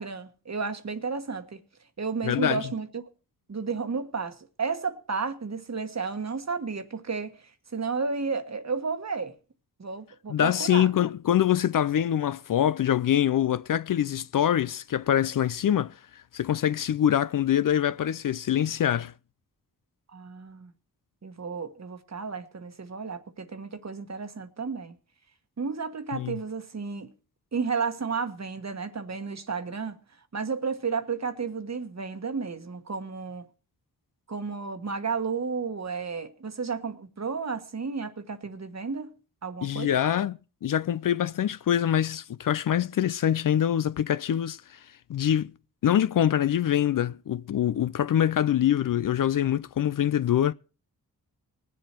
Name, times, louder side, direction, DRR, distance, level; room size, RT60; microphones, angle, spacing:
voice 1, 0.0-1.6 2.0-3.0 3.5-9.3 9.8-10.9 20.1-20.7 21.2-24.9 25.6-27.1 27.5-30.0 30.3-33.5 34.3-39.1 39.4-39.9, right 5 dB, 45° right, 1.4 m, -32 dB
voice 2, 2.2-2.7 10.3-19.1 26.1-26.4 39.6-44.8 45.1-45.5 45.8-50.5, left 10 dB, 55° left, 0.5 m, -25 dB
19.5 x 7.7 x 4.5 m
cardioid pair, 50°, 39 cm